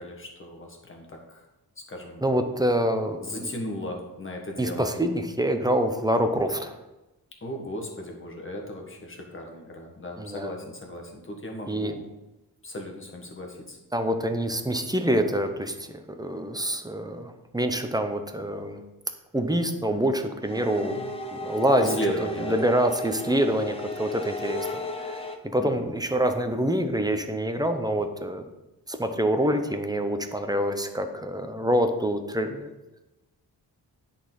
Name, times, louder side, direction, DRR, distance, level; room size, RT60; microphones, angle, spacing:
voice 1, 0.0-1.4 1.9-2.2 3.2-4.9 7.4-12.0 12.6-13.8 20.8-21.1 21.8-22.6 25.6-25.9, left 1 dB, 30° left, 1 dB, 1.5 m, -36 dB
voice 2, 2.2-3.5 4.6-6.8 10.2-10.5 11.7-11.9 13.9-18.8 19.3-21.0 21.3-22.0 22.4-24.7 25.0-25.3 25.5-28.5 28.9-32.7, right 1 dB, 10° right, 6 dB, 0.6 m, -26 dB
sound 1, 20.4-25.3, equal, 15° left, 0.8 m, -35 dB
9.9 x 4.3 x 3.9 m, 1.0 s
wide cardioid pair, 110°, 40 cm